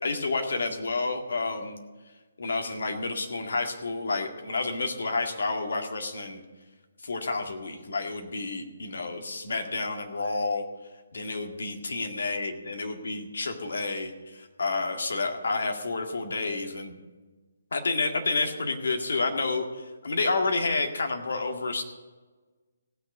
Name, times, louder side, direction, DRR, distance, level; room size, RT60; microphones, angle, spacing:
voice 1, 0.0-1.8 2.4-6.4 7.0-10.7 11.1-17.0 17.7-21.8, left 3 dB, 60° left, 4 dB, 1.9 m, -30 dB
16.5 x 6.5 x 8.0 m, 1.3 s
figure-of-eight pair, 140°, 0 cm